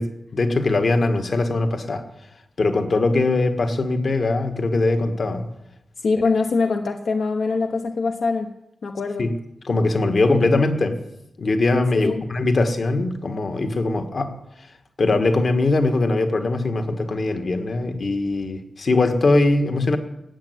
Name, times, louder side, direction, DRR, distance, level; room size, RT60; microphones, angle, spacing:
voice 1, 0.0-2.0 2.6-5.5 9.2-9.3 9.6-11.0 11.4-14.4 15.0-20.0, left 2 dB, 55° left, 7 dB, 1.8 m, -21 dB
voice 2, 6.0-8.6 8.8-9.3 11.9-12.2, left 4 dB, 75° left, 5 dB, 1.1 m, -23 dB
15.0 x 8.1 x 9.4 m, 0.87 s
wide cardioid pair, 100°, 0 cm